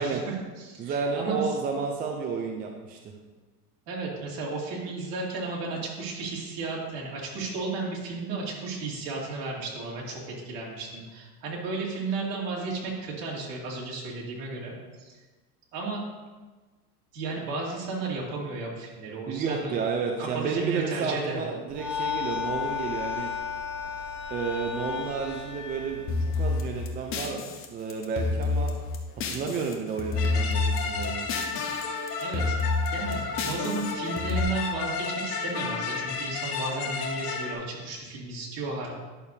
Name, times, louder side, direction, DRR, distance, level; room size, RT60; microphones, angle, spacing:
voice 1, 0.0-1.5 3.9-14.7 15.0-15.1 15.7-16.0 17.1-19.8 20.2-21.5 32.2-32.5 32.9-38.9, right 3 dB, 50° right, -3 dB, 2.8 m, -34 dB
voice 2, 0.8-3.0 19.3-23.3 24.3-26.0 26.3-27.4 27.7-28.7 29.3-31.3, right 5 dB, 20° right, 2 dB, 0.5 m, -31 dB
sound 1, 21.7-26.9, left 7 dB, 5° right, 2.3 m, -34 dB
sound 2, 26.1-29.7 30.0-31.8 32.1-34.4, left 3 dB, 25° left, 1.0 m, -29 dB
sound 3, 30.2-37.5, left 5 dB, 70° left, 1.9 m, -32 dB
11.0 x 6.8 x 2.8 m, 1.3 s
supercardioid pair, 135°, 47 cm